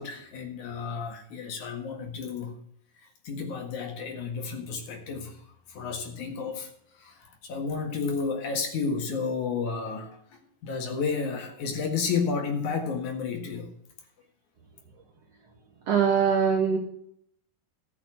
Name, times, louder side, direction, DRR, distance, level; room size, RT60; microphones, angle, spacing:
voice 1, 0.0-2.5 3.0-5.4 5.7-6.7 7.0-10.2 10.6-13.7, left 5 dB, 60° left, 4 dB, 3.0 m, -31 dB
voice 2, 15.9-16.8, right 7 dB, 60° right, 3 dB, 2.0 m, -22 dB
13.5 x 6.8 x 6.5 m, 0.68 s
omnidirectional pair, 4.0 m